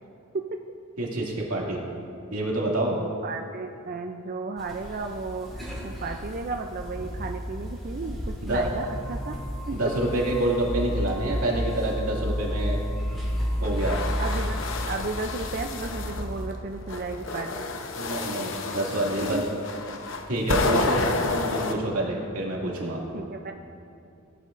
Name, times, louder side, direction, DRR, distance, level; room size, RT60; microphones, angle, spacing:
voice 1, 1.0-1.8 2.3-2.9 8.4-8.6 9.7-12.8 13.6-14.0 17.9-19.4 20.3-21.0 21.5-23.0, right 1 dB, 85° right, -3 dB, 2.3 m, -27 dB
voice 2, 2.9-9.4 9.7-9.8 14.2-14.6 14.9-17.7 19.2-19.7 23.1-23.5, right 3 dB, 40° right, 4 dB, 0.4 m, -34 dB
sound 1, 4.6-16.5, equal, ahead, 2.5 m, -32 dB
sound 2, 13.6-16.2 16.9-21.7, left 3 dB, 60° left, 0.8 m, -30 dB
17.5 x 10.5 x 2.6 m, 2.6 s
head